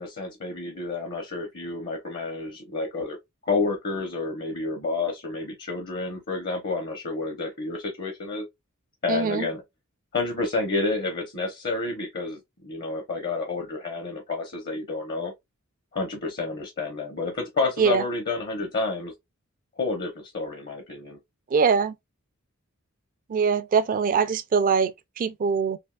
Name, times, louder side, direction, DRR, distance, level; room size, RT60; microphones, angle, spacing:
voice 1, 0.0-3.2 3.4-8.5 9.0-9.6 10.1-15.3 15.9-19.1 19.8-21.2, left 3 dB, 50° left, 0.7 m, -30 dB
voice 2, 9.1-9.5 17.8-18.0 21.5-21.9 23.3-25.8, right 5 dB, 40° right, 0.3 m, -23 dB
3.4 x 2.7 x 2.2 m
head